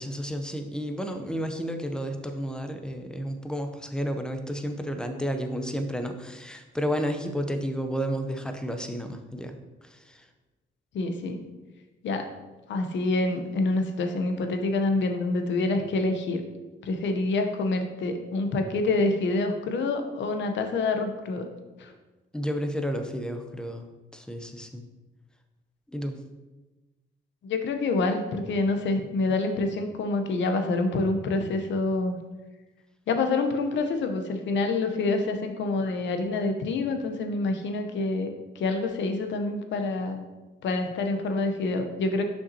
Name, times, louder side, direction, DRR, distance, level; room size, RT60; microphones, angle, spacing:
voice 1, 0.0-9.6 9.8-10.3 22.3-24.8 25.9-26.2, equal, 5° left, 6 dB, 0.7 m, -32 dB
voice 2, 10.9-11.4 12.0-12.3 12.7-16.4 16.8-21.5 21.8-21.9 27.4-32.2 33.1-40.2 40.6-42.2, left 3 dB, 70° left, 6 dB, 0.8 m, -27 dB
6.9 x 5.6 x 2.8 m, 1.1 s
cardioid pair, 90°, 20 cm